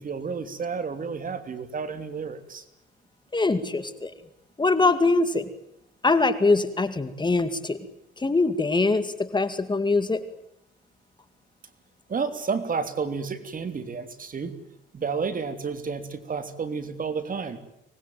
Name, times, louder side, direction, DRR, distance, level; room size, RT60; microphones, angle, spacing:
voice 1, 0.0-2.6 12.1-14.6 14.9-17.6, right 5 dB, 45° right, 10 dB, 3.2 m, -31 dB
voice 2, 3.3-4.1 4.6-5.5 6.0-7.8 8.2-10.2, left 3 dB, 20° left, 11 dB, 2.3 m, -23 dB
25.0 x 20.0 x 9.3 m, 0.82 s
cardioid pair, 90°, 20 cm